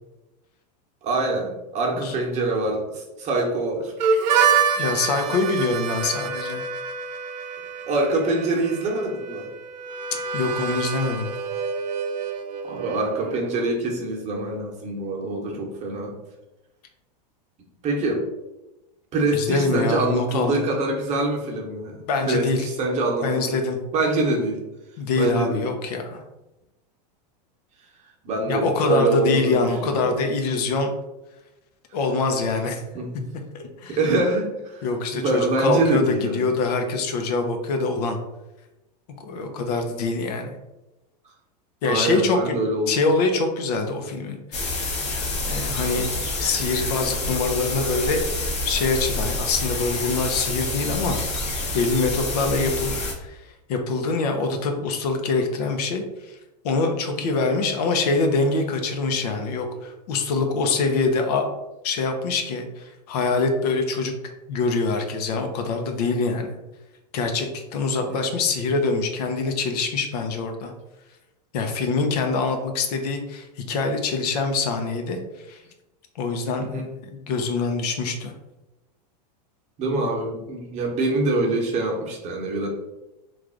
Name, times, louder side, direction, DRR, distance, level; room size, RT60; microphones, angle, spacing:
voice 1, 1.0-3.9 7.8-9.5 12.6-16.2 17.8-18.2 19.1-23.5 23.9-24.6 25.2-25.7 28.2-30.2 32.9-33.2 33.9-34.9 35.1-36.5 37.3-37.4 39.8-40.0 41.8-42.9 52.4-52.7 57.3-57.4 68.0-68.3 76.6-76.9 79.8-82.7, right 2 dB, 35° right, -1 dB, 0.9 m, -25 dB
Harmonica, 4.0-13.6, right 6 dB, 85° right, 0.5 m, -27 dB
voice 2, 4.8-6.6 10.3-11.3 19.3-20.6 22.1-22.7 23.2-23.8 25.0-26.2 28.5-30.9 31.9-32.8 33.5-34.0 34.8-38.2 39.2-40.6 41.8-42.6 42.9-44.8 45.4-46.1 46.4-48.2 48.6-51.2 51.7-56.4 56.6-61.4 61.8-64.1 64.5-66.5 67.1-70.7 71.5-75.2 75.5-75.6 76.2-78.3, left 3 dB, 70° left, 4 dB, 0.7 m, -24 dB
sound 1, 44.5-53.1, left 2 dB, 35° left, 0.9 m, -28 dB
3.3 x 2.5 x 3.7 m, 0.98 s
supercardioid pair, 130°, 21 cm